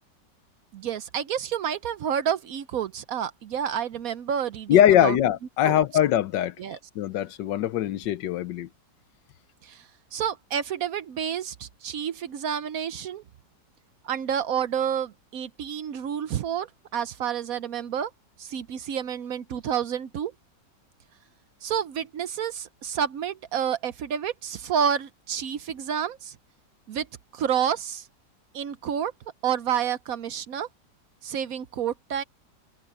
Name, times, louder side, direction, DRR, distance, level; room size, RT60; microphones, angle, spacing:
voice 1, 0.7-5.2 5.6-5.8 6.6-6.8 9.6-9.9 10.1-13.2 14.0-18.1 18.4-20.3 21.6-26.4 26.9-27.1 27.3-28.1 28.5-29.1 29.4-30.7 31.2-32.2, right 8 dB, 60° right, 1.0 m, -29 dB
voice 2, 4.7-6.5 6.9-8.7, left 11 dB, 80° left, 1.4 m, -22 dB
omnidirectional pair, 1.9 m